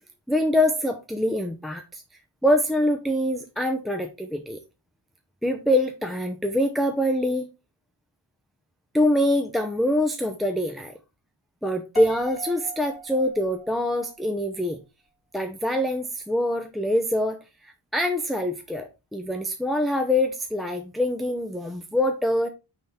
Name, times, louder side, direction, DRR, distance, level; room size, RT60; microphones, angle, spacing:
voice 1, 0.3-2.0 2.4-4.6 5.4-7.5 8.9-10.9 11.6-14.8 15.3-17.4 17.6-22.5, left 1 dB, ahead, 0.6 m, -24 dB
Piano, 12.0-14.2, right 2 dB, 55° left, 1.9 m, -39 dB
9.2 x 3.7 x 4.2 m
wide cardioid pair, 150°, 43 cm